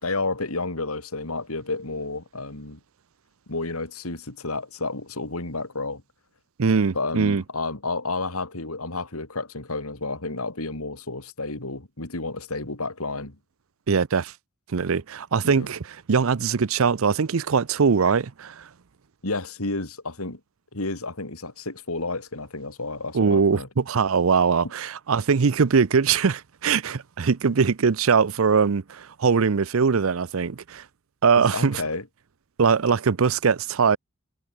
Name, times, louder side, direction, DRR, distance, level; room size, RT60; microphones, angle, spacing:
voice 1, 0.0-2.8 3.5-6.0 6.9-13.4 15.4-15.7 19.2-20.4 20.7-23.7 31.4-32.1, left 3 dB, 90° left, 3.6 m, -31 dB
voice 2, 6.6-7.4 13.9-14.3 14.7-18.7 23.1-30.8 31.2-31.8 32.6-34.0, right 5 dB, 75° right, 0.6 m, -21 dB
head